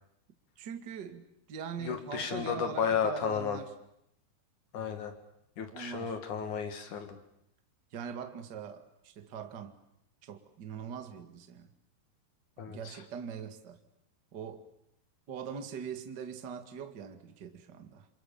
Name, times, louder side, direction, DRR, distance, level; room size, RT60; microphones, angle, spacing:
voice 1, 0.6-3.7 5.7-6.2 7.9-9.7 10.2-11.7 12.6-13.8 14.3-14.6 15.3-18.1, right 7 dB, 50° right, 1.2 m, -42 dB
voice 2, 1.8-3.6 4.7-5.1 5.6-7.2 12.6-13.0, left 7 dB, 50° left, 3.1 m, -33 dB
27.5 x 27.5 x 7.2 m
omnidirectional pair, 5.2 m